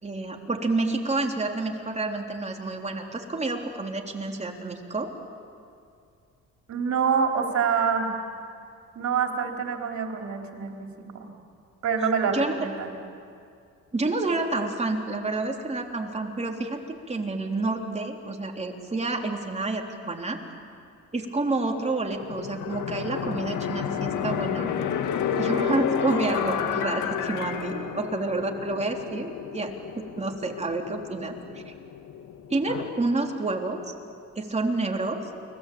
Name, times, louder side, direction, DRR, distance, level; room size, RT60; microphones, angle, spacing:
voice 1, 0.0-5.1 12.3-12.5 13.9-20.4 21.1-24.7 25.4-31.4 31.7-31.8 32.5-33.9 34.4-35.2, right 2 dB, 20° right, 2 dB, 3.7 m, -29 dB
voice 2, 6.7-8.1 8.9-10.9 11.1-11.3 11.8-12.9 25.4-25.8, right 6 dB, 65° right, 2 dB, 4.3 m, -26 dB
sound 1, 22.2-32.9, left 8 dB, 80° left, 1.9 m, -31 dB
29.5 x 21.5 x 8.8 m, 2.4 s
cardioid pair, 90°, 30 cm